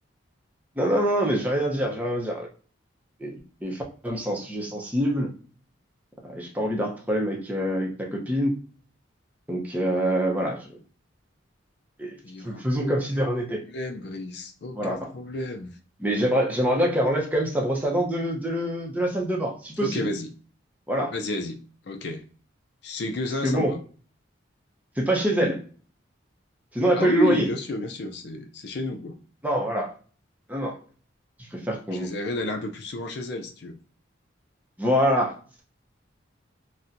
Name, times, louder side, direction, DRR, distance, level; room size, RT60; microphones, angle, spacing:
voice 1, 0.8-2.5 3.2-5.3 6.2-8.5 9.5-10.7 12.0-12.2 12.4-13.6 14.7-15.1 16.0-20.1 20.9-21.1 23.4-23.7 25.0-25.6 26.7-27.5 29.4-29.9 30.5-30.8 31.4-32.1 34.8-35.6, equal, 10° right, -1 dB, 0.6 m, -25 dB
voice 2, 12.2-13.3 13.6-15.7 19.8-20.3 21.1-22.2 22.8-23.8 26.9-29.2 31.9-33.8, left 1 dB, 55° left, 5 dB, 0.4 m, -31 dB
4.1 x 2.1 x 2.5 m, 0.41 s
head